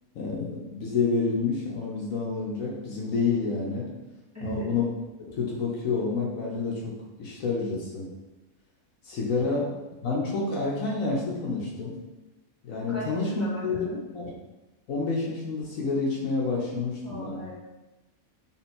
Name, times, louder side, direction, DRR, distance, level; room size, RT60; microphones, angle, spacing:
voice 1, 0.1-3.9 4.4-4.9 5.3-6.9 7.2-8.1 9.0-9.7 10.0-12.0 12.6-13.9 14.1-14.3 14.9-17.4, left 4 dB, 70° left, -3 dB, 1.2 m, -28 dB
voice 2, 4.3-4.7 12.9-14.0 17.0-17.5, equal, 10° right, -10 dB, 1.4 m, -37 dB
3.7 x 2.8 x 4.3 m, 1.1 s
omnidirectional pair, 1.5 m